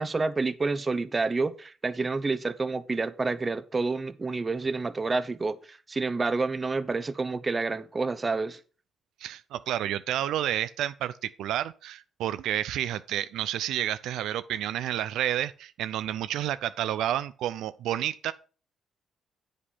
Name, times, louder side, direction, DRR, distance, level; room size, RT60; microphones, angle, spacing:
voice 1, 0.0-8.6, right 3 dB, 25° right, 0.7 m, -29 dB
voice 2, 9.2-18.3, right 12 dB, 85° right, 0.4 m, -30 dB
8.3 x 5.2 x 5.5 m
cardioid pair, 90°, 0 cm